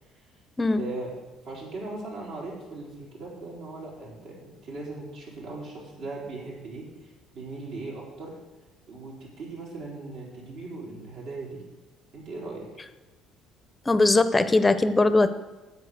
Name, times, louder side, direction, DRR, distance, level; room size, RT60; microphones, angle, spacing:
voice 1, 0.7-1.1 1.4-8.3 8.9-11.6 12.1-12.6, right 3 dB, 75° right, -4 dB, 4.5 m, -39 dB
voice 2, 13.9-15.3, left 2 dB, 20° left, 12 dB, 0.6 m, -20 dB
8.2 x 7.6 x 8.1 m, 1.1 s
supercardioid pair, 95°, 0 cm